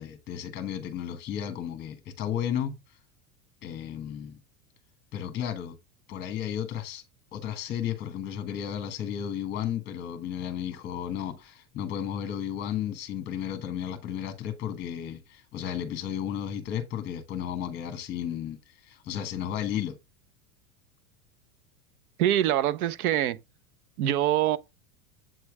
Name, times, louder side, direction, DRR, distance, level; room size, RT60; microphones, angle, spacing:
voice 1, 0.0-3.0 3.6-4.4 5.1-5.8 6.1-7.0 7.3-20.0, left 9 dB, 25° left, 1.0 m, -33 dB
voice 2, 22.2-23.4 24.0-24.6, right 12 dB, 90° right, 0.9 m, -24 dB
7.8 x 3.2 x 4.7 m
supercardioid pair, 155°, 42 cm